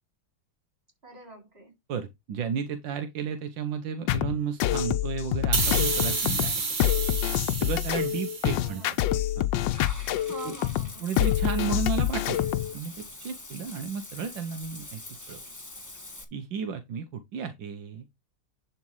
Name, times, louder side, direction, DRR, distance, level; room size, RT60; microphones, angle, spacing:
voice 1, 1.0-1.7 8.5-9.3 10.3-11.1, right 3 dB, 30° right, 4.3 m, -45 dB
voice 2, 1.9-6.6 6.9-7.0 7.6-8.8 9.4-9.5 10.4-10.5 11.0-15.0 15.3-15.4 16.3-18.1, right 6 dB, 80° right, 1.7 m, -33 dB
sound 1, 4.1-12.7, left 13 dB, 75° left, 1.3 m, -26 dB
sound 2, 5.5-8.9, right 4 dB, 55° right, 2.5 m, -30 dB
Water / Bathtub (filling or washing), 9.7-16.2, left 2 dB, 10° left, 1.2 m, -44 dB
11.0 x 4.3 x 4.7 m
omnidirectional pair, 2.0 m